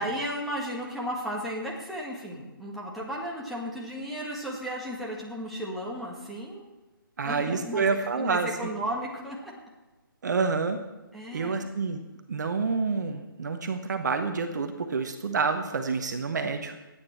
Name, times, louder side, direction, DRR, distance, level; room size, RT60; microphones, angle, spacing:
voice 1, 0.0-6.6 7.2-9.5 11.1-11.7, equal, ahead, -5 dB, 1.7 m, -34 dB
voice 2, 7.2-8.7 10.2-10.8 11.3-12.0 12.3-16.8, right 4 dB, 50° right, 7 dB, 1.1 m, -28 dB
16.0 x 9.1 x 4.5 m, 1.1 s
figure-of-eight pair, 145°, 12 cm